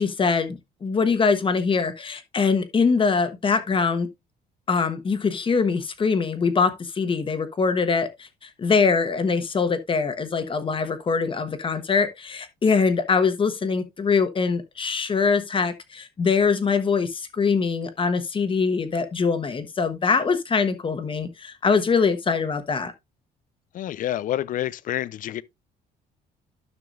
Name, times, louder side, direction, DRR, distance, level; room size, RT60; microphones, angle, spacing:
voice 1, 0.0-4.1 4.7-22.9, left 5 dB, 30° left, 1.2 m, -23 dB
voice 2, 23.7-25.4, left 12 dB, 55° left, 0.5 m, -28 dB
12.5 x 5.9 x 2.5 m
cardioid pair, 110°, 17 cm